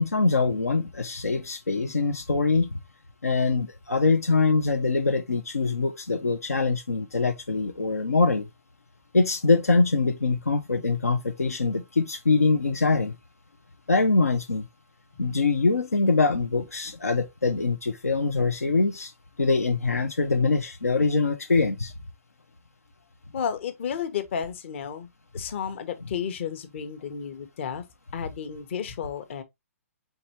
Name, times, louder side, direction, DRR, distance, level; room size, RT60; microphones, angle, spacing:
voice 1, 0.0-2.8 3.2-8.5 9.1-13.1 13.9-14.7 15.2-19.1 19.4-21.9, left 3 dB, 85° left, 0.6 m, -23 dB
voice 2, 23.3-25.1 25.3-27.8 28.1-29.4, left 7 dB, 50° left, 0.9 m, -32 dB
4.6 x 3.9 x 2.9 m
figure-of-eight pair, 125°, 8 cm